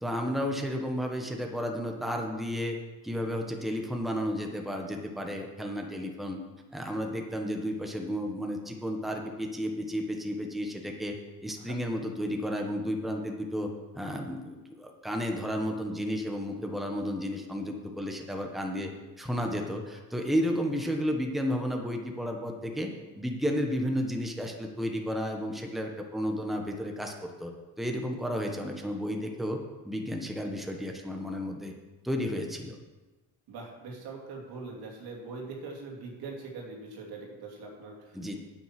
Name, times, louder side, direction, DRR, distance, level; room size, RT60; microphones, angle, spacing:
voice 1, 0.0-2.8 3.0-6.4 6.7-11.1 11.4-18.9 19.2-29.6 29.8-31.7 32.0-32.8 38.1-38.4, equal, ahead, 2 dB, 1.3 m, -32 dB
voice 2, 33.5-38.4, right 3 dB, 85° right, 0 dB, 2.7 m, -42 dB
9.1 x 8.0 x 5.9 m, 1.1 s
cardioid pair, 120°, 37 cm